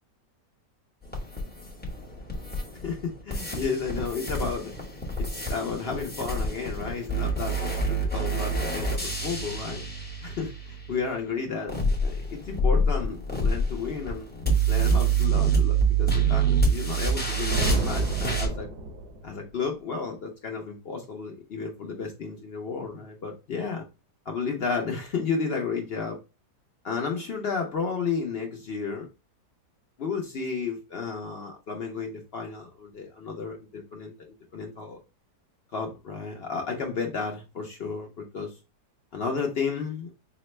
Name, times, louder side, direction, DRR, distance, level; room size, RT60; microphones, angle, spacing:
sound 1, 1.1-3.0 3.3-11.0 11.7-18.5, right 3 dB, 10° left, 0.6 m, -26 dB
voice 1, 2.8-4.7 5.2-7.6 7.8-9.9 10.2-14.3 14.7-18.7 19.2-23.9 24.3-26.2 26.8-29.1 30.0-34.1 34.5-35.0 35.7-38.5 39.1-40.1, left 5 dB, 65° left, 2 dB, 0.6 m, -32 dB
sound 2, 17.5-19.5, right 1 dB, 75° right, 1.3 m, -31 dB
4.9 x 2.1 x 3.0 m, 0.28 s
omnidirectional pair, 1.8 m